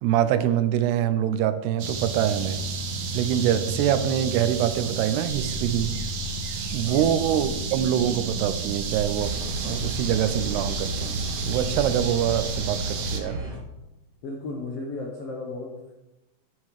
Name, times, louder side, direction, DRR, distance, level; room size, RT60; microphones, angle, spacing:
voice 1, 0.0-2.6 3.1-6.0 6.7-13.4, right 10 dB, 85° right, 12 dB, 2.7 m, -25 dB
sound 1, 1.8-13.2, right 4 dB, 65° right, 1.9 m, -32 dB
sound 2, 5.2-13.8, right 5 dB, 35° left, 2.0 m, -39 dB
sound 3, 9.2-13.6, right 1 dB, 45° right, 1.1 m, -34 dB
voice 2, 14.2-15.9, left 3 dB, 75° left, -1 dB, 1.4 m, -34 dB
11.0 x 7.3 x 4.8 m, 0.97 s
omnidirectional pair, 4.7 m